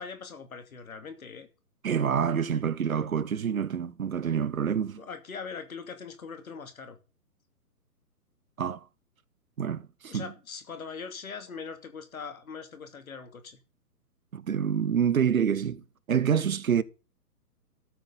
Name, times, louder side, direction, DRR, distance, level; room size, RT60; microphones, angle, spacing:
voice 1, 0.0-1.5 5.0-7.0 10.1-13.6, left 5 dB, 60° left, 2.7 m, -41 dB
voice 2, 1.8-5.0 8.6-8.8 9.6-10.3 14.3-16.8, right 7 dB, 60° right, 1.0 m, -27 dB
12.5 x 9.0 x 4.0 m
figure-of-eight pair, 130°, 48 cm